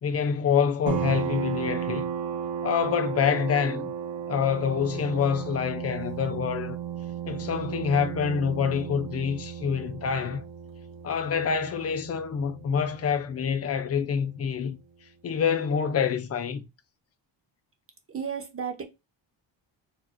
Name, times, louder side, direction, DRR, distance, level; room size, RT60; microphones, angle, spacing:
voice 1, 0.0-2.1 2.6-3.9 4.3-6.8 7.3-10.4 11.0-14.8 15.2-16.7, left 7 dB, 35° left, 0.4 m, -26 dB
sound 1, 0.9-14.1, right 8 dB, 75° right, 0.7 m, -35 dB
voice 2, 18.1-18.8, right 7 dB, 30° right, 0.7 m, -33 dB
4.2 x 2.5 x 2.9 m
wide cardioid pair, 155°, 46 cm